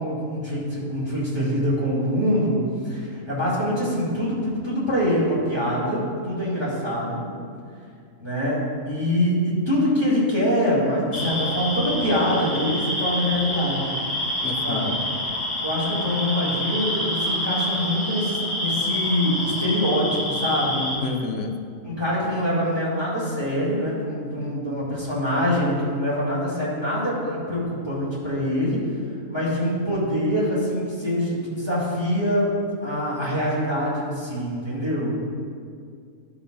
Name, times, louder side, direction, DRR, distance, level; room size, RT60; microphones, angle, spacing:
voice 1, 0.0-7.3 8.2-14.0 14.6-14.9 15.6-20.9 21.8-32.5 32.8-35.2, equal, 20° right, -9 dB, 2.4 m, -24 dB
sound 1, 11.1-21.0, left 1 dB, 30° left, 2.3 m, -27 dB
voice 2, 14.4-15.0 21.0-21.6, left 3 dB, 65° left, 6 dB, 0.9 m, -29 dB
12.5 x 7.1 x 2.6 m, 2.2 s
omnidirectional pair, 1.4 m